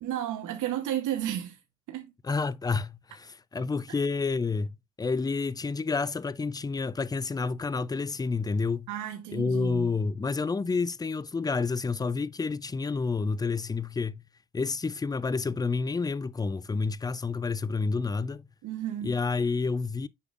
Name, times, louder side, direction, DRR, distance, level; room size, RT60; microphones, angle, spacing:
voice 1, 0.0-1.6 1.9-2.1 8.9-9.9 18.6-19.2, right 11 dB, 80° right, 1.0 m, -32 dB
voice 2, 2.2-4.7 5.0-8.9 9.3-14.2 14.5-18.4 19.0-20.1, left 4 dB, 15° left, 0.3 m, -29 dB
8.2 x 5.5 x 2.4 m
cardioid pair, 90°, 30 cm